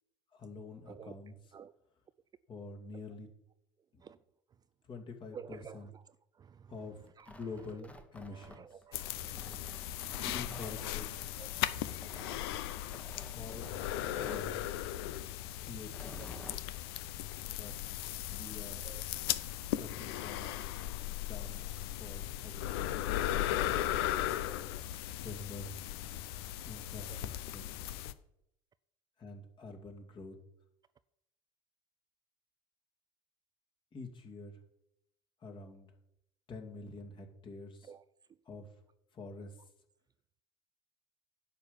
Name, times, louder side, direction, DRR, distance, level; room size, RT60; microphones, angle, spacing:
voice 1, 0.3-1.3 2.5-3.3 3.9-4.0 4.8-5.9 6.7-7.0 7.3-8.7 10.3-11.3 13.3-14.6 15.6-16.2 17.5-17.7 18.3-18.9 19.8-20.5 21.2-23.2 25.2-25.8 26.6-27.7 29.2-30.4 33.9-34.6 35.4-35.9 36.5-37.9 38.5-38.7 39.1-39.6, left 3 dB, 35° left, 2.4 m, -47 dB
voice 2, 0.9-1.2 1.5-1.7 2.9-3.0 4.0-4.2 4.5-4.6 5.3-7.8 8.2-10.6 10.9-12.1 13.8-13.9 16.2-16.6 18.8-19.0 20.6-20.7 27.1-27.2 37.8-38.0, right 7 dB, 30° right, 0.4 m, -53 dB
Tearing, 7.1-8.8 9.3-10.8 11.9-12.4 12.9-14.5 15.8-16.6, left 1 dB, 10° left, 1.3 m, -51 dB
sound 1, 8.9-28.1, left 13 dB, 65° left, 0.6 m, -37 dB
11.0 x 5.0 x 7.2 m
figure-of-eight pair, 65°, 14 cm